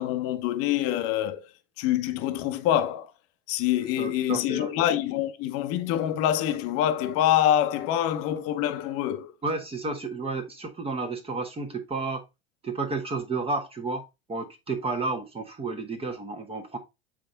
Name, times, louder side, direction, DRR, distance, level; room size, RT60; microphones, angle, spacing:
voice 1, 0.0-1.5 1.8-3.1 3.5-9.3, left 11 dB, 45° left, 1.0 m, -25 dB
voice 2, 4.0-4.7 9.4-12.2 12.6-14.0 14.3-16.8, right 3 dB, 20° right, 1.4 m, -31 dB
7.5 x 4.1 x 3.9 m
hypercardioid pair, 85°, 31 cm